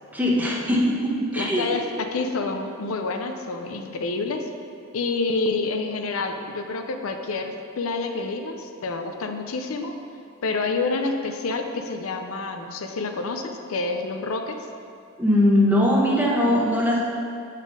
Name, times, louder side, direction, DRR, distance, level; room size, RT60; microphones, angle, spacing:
voice 1, 0.1-1.8 15.2-17.0, left 1 dB, 10° right, -4 dB, 1.0 m, -20 dB
voice 2, 1.3-4.5 4.9-10.0 10.4-14.6, left 3 dB, 80° left, 5 dB, 0.5 m, -28 dB
8.1 x 4.2 x 4.9 m, 2.5 s
head